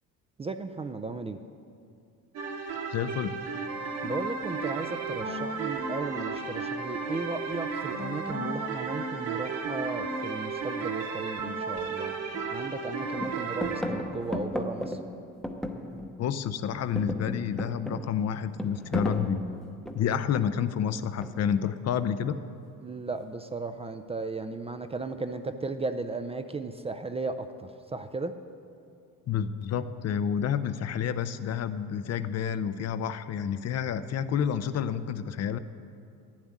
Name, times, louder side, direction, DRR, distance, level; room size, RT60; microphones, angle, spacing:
voice 1, 0.4-1.4 4.0-15.0 22.8-28.3, right 3 dB, 15° right, 7 dB, 0.4 m, -35 dB
sound 1, 2.3-13.8, right 4 dB, 75° right, 2.9 m, -33 dB
voice 2, 2.9-3.4 16.2-19.4 19.9-22.4 29.3-35.6, left 8 dB, 45° left, 12 dB, 0.6 m, -29 dB
sound 2, 11.8-11.9 12.3-12.9 13.2-16.3 16.6-20.2 21.2-21.7, left 1 dB, ahead, 0.8 m, -35 dB
11.0 x 7.3 x 9.5 m, 2.6 s
cardioid pair, 120°, 35 cm